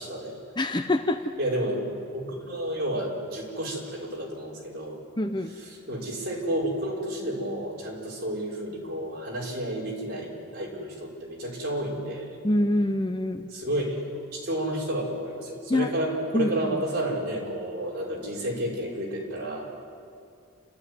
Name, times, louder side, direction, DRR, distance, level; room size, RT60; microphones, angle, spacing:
voice 1, 0.0-0.4 1.4-5.0 5.6-12.3 13.5-14.0 14.3-19.8, right 1 dB, 50° right, -3 dB, 5.0 m, -31 dB
voice 2, 0.6-1.2 5.2-5.5 12.4-13.5 15.7-15.9 16.3-16.8, left 1 dB, 20° left, 7 dB, 0.8 m, -25 dB
28.5 x 13.0 x 9.5 m, 2.4 s
head